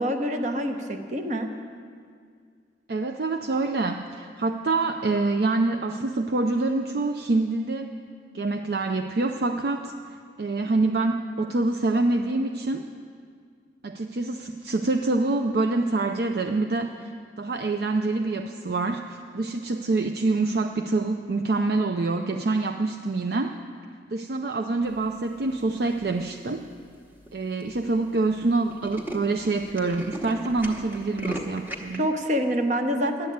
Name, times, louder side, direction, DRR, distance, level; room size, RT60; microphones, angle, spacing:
voice 1, 0.0-1.5 31.9-33.3, equal, 40° right, 6 dB, 0.9 m, -26 dB
voice 2, 2.9-7.9 8.3-9.9 10.4-12.8 13.8-17.1 17.4-23.5 24.1-26.6 27.3-32.1, right 3 dB, 60° right, 5 dB, 0.5 m, -26 dB
Tools, 25.9-26.3 26.9-27.0 27.3-27.4 27.6-27.8 28.1-28.2 28.5-32.0, right 1 dB, 10° right, 1.0 m, -37 dB
11.5 x 7.9 x 9.3 m, 2.1 s
head